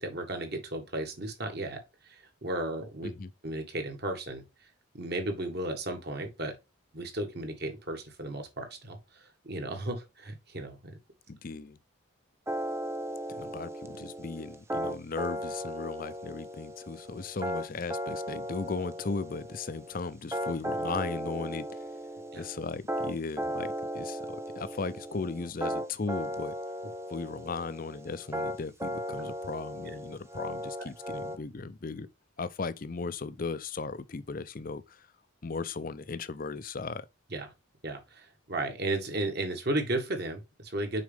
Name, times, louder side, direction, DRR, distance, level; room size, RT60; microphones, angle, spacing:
voice 1, 0.0-3.1 3.4-4.4 4.9-6.5 6.9-11.0 22.3-22.5 26.8-26.9 30.8-30.9 37.3-37.5 37.8-41.0, right 2 dB, 50° right, 1.7 m, -34 dB
voice 2, 11.3-11.8 13.3-21.6 22.4-26.5 27.1-32.1 32.4-35.0 35.4-37.1, left 4 dB, 40° left, 0.5 m, -37 dB
sound 1, 12.5-31.4, equal, 10° right, 0.6 m, -36 dB
6.3 x 4.9 x 3.4 m
head